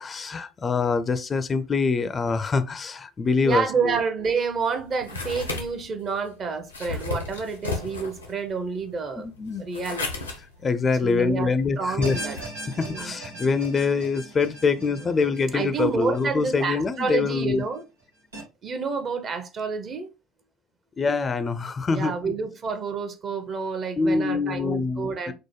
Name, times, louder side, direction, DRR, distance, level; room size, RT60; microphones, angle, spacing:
voice 1, 0.0-4.0 9.2-9.7 10.6-12.2 12.8-17.6 21.0-22.3 24.0-25.3, left 4 dB, 30° left, 0.4 m, -25 dB
voice 2, 3.4-9.3 9.6-10.3 11.0-12.4 12.6-13.2 15.0-17.8 18.6-20.1 21.9-25.3, right 5 dB, 40° right, 0.7 m, -29 dB
sound 1, 4.2-12.4, left 3 dB, 90° left, 0.6 m, -35 dB
sound 2, 12.0-17.2 17.6-17.7 18.3-18.4, right 1 dB, 85° right, 1.3 m, -39 dB
4.7 x 2.1 x 3.1 m
figure-of-eight pair, 60°, 0 cm